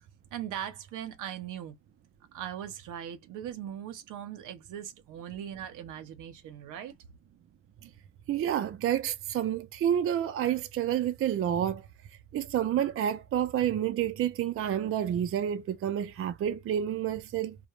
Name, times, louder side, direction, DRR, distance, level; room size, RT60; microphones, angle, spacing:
voice 1, 0.3-1.8 2.3-6.9, right 10 dB, 85° right, 0.7 m, -39 dB
voice 2, 8.3-11.8 12.3-17.6, right 10 dB, 45° right, 0.4 m, -29 dB
2.2 x 2.0 x 2.9 m
cardioid pair, 90°, 30 cm